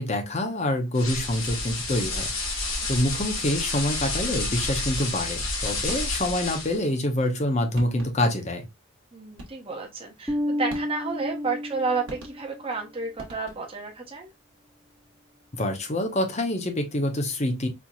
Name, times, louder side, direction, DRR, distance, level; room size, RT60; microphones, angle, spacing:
voice 1, 0.0-2.3 2.9-8.7 15.5-17.7, left 1 dB, 30° left, 0.7 m, -26 dB
sound 1, 0.9-6.8, left 2 dB, 65° left, 1.8 m, -30 dB
sound 2, 5.9-6.4 7.4-7.5 7.8-8.4 9.4-9.8 10.7-11.2 12.1-12.7 13.2-13.9, right 1 dB, 65° right, 1.1 m, -44 dB
voice 2, 9.1-14.3, right 4 dB, 25° right, 0.8 m, -31 dB
Bass guitar, 10.3-12.7, left 1 dB, ahead, 0.3 m, -31 dB
4.4 x 2.8 x 2.3 m
head